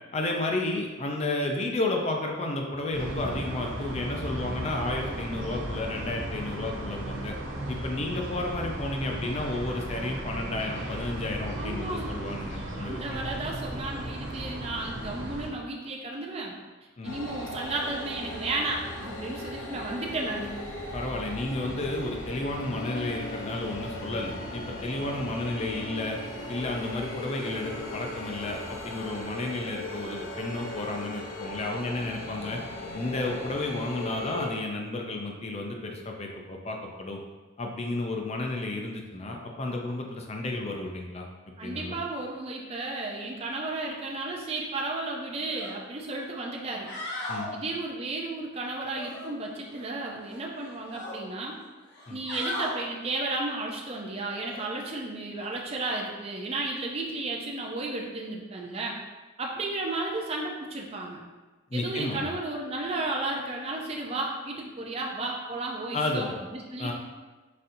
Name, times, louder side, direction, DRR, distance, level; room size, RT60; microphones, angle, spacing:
voice 1, 0.1-7.3 7.7-13.0 17.0-17.2 20.9-26.2 26.5-32.6 32.9-37.2 37.6-41.3 41.6-42.0 47.3-47.5 52.1-52.2 61.7-62.3 65.9-66.4 66.8-66.9, left 2 dB, 30° left, 1 dB, 0.5 m, -32 dB
sound 1, 2.9-15.5, right 1 dB, 70° right, 0.7 m, -36 dB
voice 2, 11.6-12.3 12.8-16.5 17.0-20.6 41.6-46.9 47.5-51.5 52.1-59.0 59.4-61.2 61.7-66.9, right 2 dB, 30° right, -1 dB, 0.5 m, -33 dB
sound 2, 17.0-34.5, left 1 dB, 85° left, 0.7 m, -38 dB
sound 3, 45.5-45.7 46.1-46.2 46.7-47.5 48.9-49.9 50.2-51.2 51.9-52.7 54.4-54.6, left 1 dB, 55° left, 1.0 m, -37 dB
4.2 x 3.8 x 2.6 m, 1.3 s
head